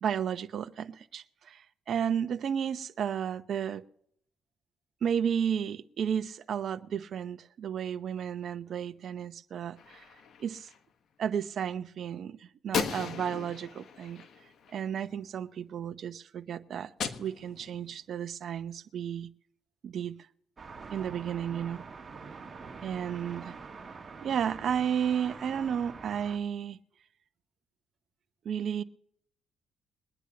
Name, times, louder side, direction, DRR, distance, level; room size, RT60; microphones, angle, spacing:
voice 1, 0.0-3.8 5.0-10.0 10.4-10.7 11.2-14.2 14.7-16.9 17.2-19.3 19.8-20.3 20.9-21.8 22.8-23.6 24.2-26.8 28.4-28.8, right 8 dB, 60° right, 11 dB, 0.9 m, -33 dB
Gunshot gunfire, 9.8-10.8 12.7-15.1 17.0-18.0, left 6 dB, 65° left, 1.4 m, -37 dB
sound 1, 20.6-26.4, right 4 dB, 30° right, 2.3 m, -45 dB
22.5 x 10.0 x 2.9 m, 0.67 s
cardioid pair, 90°, 0 cm